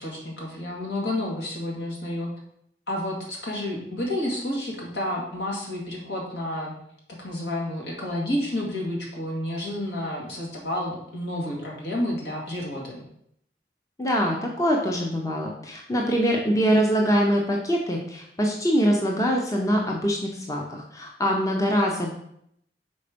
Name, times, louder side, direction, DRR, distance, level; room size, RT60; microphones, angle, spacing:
voice 1, 0.0-2.3 2.9-6.7 7.2-13.0, left 1 dB, 70° left, -3 dB, 2.2 m, -30 dB
voice 2, 14.0-22.1, equal, 20° left, 0 dB, 0.7 m, -23 dB
5.5 x 4.3 x 5.1 m, 0.72 s
head